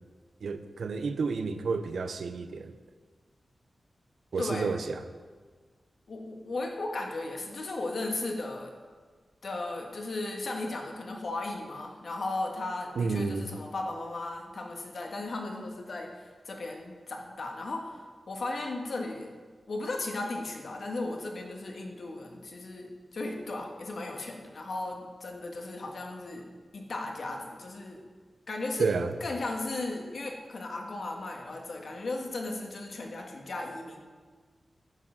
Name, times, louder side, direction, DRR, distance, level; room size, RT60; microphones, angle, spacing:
voice 1, 0.4-2.7 4.3-5.0 13.0-13.5 28.8-29.1, right 4 dB, 85° right, 9 dB, 0.7 m, -30 dB
voice 2, 6.1-8.7 9.4-19.3 19.7-26.4 26.7-28.0 28.5-28.9 29.2-34.0, left 2 dB, 60° left, 2 dB, 1.6 m, -36 dB
10.5 x 7.4 x 6.3 m, 1.5 s
wide cardioid pair, 145°, 0 cm